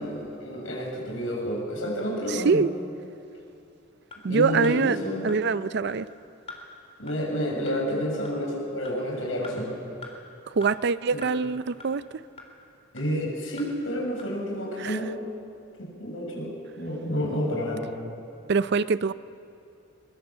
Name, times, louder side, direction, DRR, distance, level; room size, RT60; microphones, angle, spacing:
voice 1, 0.0-2.6 4.2-5.3 7.0-9.7 12.9-15.1 15.8-17.9, equal, 75° left, -1 dB, 7.1 m, -30 dB
voice 2, 2.3-2.7 4.2-5.0 5.2-6.1 10.5-12.0 14.8-15.0 18.5-19.1, right 4 dB, 60° right, 15 dB, 0.5 m, -24 dB
sound 1, 4.1-4.2 4.6-4.8 5.3-5.4 5.9-6.0 6.5-6.6 7.1-7.2 7.7-7.8 8.2-8.4 8.8-9.0 9.4-9.5 10.0-10.1 10.6-10.7 11.2-11.3 11.8-11.9 12.4-12.5 13.0-13.1 13.6-13.7 14.2-14.3, left 3 dB, 30° left, 3.5 m, -42 dB
23.0 x 22.5 x 7.4 m, 2.6 s
head